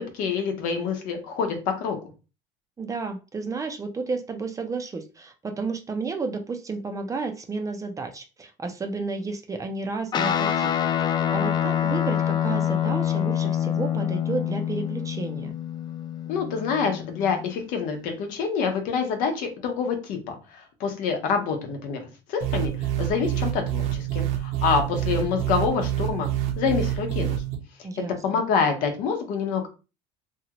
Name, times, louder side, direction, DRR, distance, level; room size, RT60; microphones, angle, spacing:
voice 1, 0.0-2.0 16.3-26.3 26.6-27.4 28.2-29.7, left 6 dB, 70° left, 5 dB, 0.8 m, -27 dB
voice 2, 2.8-10.9 11.3-15.5 27.8-28.4, right 4 dB, 20° right, 6 dB, 0.5 m, -32 dB
Guitar, 10.1-17.8, left 10 dB, 30° left, 0.3 m, -26 dB
sound 1, 22.4-27.6, right 12 dB, 65° right, 0.8 m, -27 dB
2.8 x 2.4 x 2.9 m, 0.31 s
supercardioid pair, 105°, 15 cm